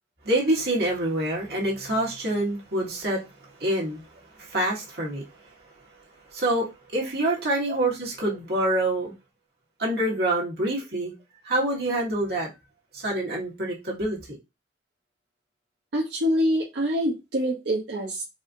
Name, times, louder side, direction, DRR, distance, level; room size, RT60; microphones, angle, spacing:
voice 1, 0.2-3.2 3.6-4.0 4.4-5.3 6.3-9.1 9.8-11.1 11.4-12.5 12.9-14.4, right 1 dB, 55° right, 1.5 m, -26 dB
voice 2, 15.9-18.2, equal, 75° right, 0.7 m, -25 dB
4.2 x 2.5 x 2.5 m
head